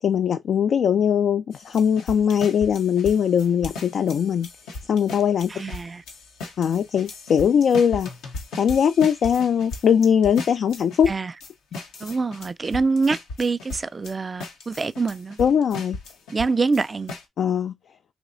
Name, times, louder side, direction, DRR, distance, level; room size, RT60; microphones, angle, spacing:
voice 1, 0.0-4.5 4.9-5.5 6.6-8.1 8.6-11.1 15.4-16.0 17.4-17.7, left 8 dB, 70° left, 0.3 m, -20 dB
sound 1, 1.5-14.1 14.4-17.2, left 2 dB, 90° left, 0.9 m, -37 dB
voice 2, 5.5-6.0 11.1-11.3 12.0-15.4 16.3-17.1, right 4 dB, 45° right, 0.3 m, -25 dB
4.2 x 2.9 x 2.5 m
hypercardioid pair, 40°, 0 cm